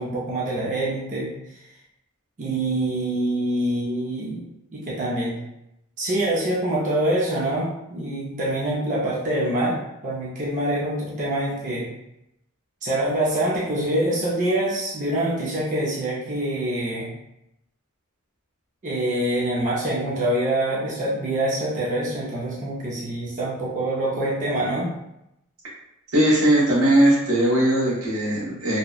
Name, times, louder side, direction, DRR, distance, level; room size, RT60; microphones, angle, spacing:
voice 1, 0.0-1.6 2.4-5.4 6.0-11.9 12.8-17.1 18.8-24.9, right 1 dB, 35° right, -7 dB, 0.5 m, -25 dB
voice 2, 26.1-28.8, right 1 dB, 85° right, -6 dB, 1.0 m, -19 dB
2.7 x 2.1 x 2.3 m, 0.86 s
head